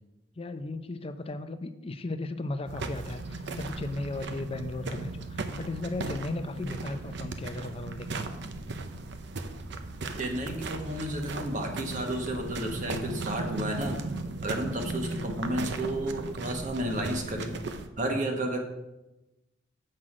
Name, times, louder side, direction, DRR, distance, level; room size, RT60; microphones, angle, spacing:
voice 1, 0.4-8.3, left 2 dB, 30° left, 10 dB, 0.5 m, -36 dB
sound 1, 2.7-17.9, right 3 dB, 60° right, 0.6 m, -37 dB
voice 2, 10.2-14.0 14.4-17.5 18.0-18.6, right 1 dB, 40° right, 3 dB, 1.2 m, -32 dB
7.7 x 5.9 x 4.9 m, 1.0 s
head